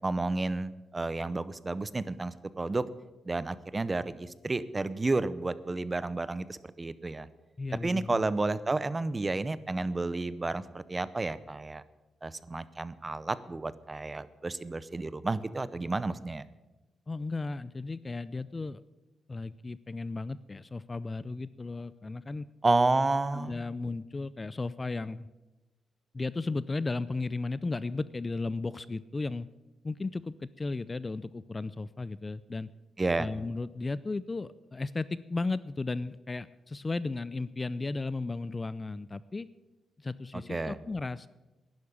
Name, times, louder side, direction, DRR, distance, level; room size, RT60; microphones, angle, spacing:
voice 1, 0.0-2.8 3.2-7.3 7.8-11.8 12.2-16.5 22.6-23.7 33.0-33.3 40.5-40.8, right 3 dB, 20° right, 16 dB, 0.6 m, -31 dB
voice 2, 7.6-8.3 17.1-18.8 19.3-22.5 23.3-25.3 26.1-29.5 29.8-32.7 33.2-39.5 40.0-41.3, left 3 dB, 25° left, 17 dB, 0.4 m, -35 dB
11.5 x 10.5 x 8.7 m, 1.1 s
cardioid pair, 125°, 0 cm